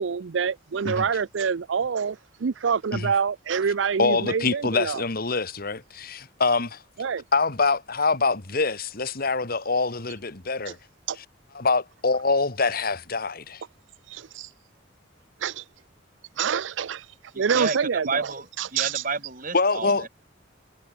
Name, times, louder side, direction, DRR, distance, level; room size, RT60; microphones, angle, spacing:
voice 1, 0.0-5.0 7.0-7.2 10.7-10.8 11.1-11.2 14.1-14.5 15.4-15.6 16.4-17.1 17.4-18.1 18.6-18.9, right 6 dB, 80° right, 0.5 m, -26 dB
voice 2, 4.0-6.8 7.3-10.8 11.5-13.6 19.5-20.1, left 3 dB, 50° left, 2.0 m, -25 dB
voice 3, 17.3-20.1, right 4 dB, 45° right, 5.6 m, -31 dB
head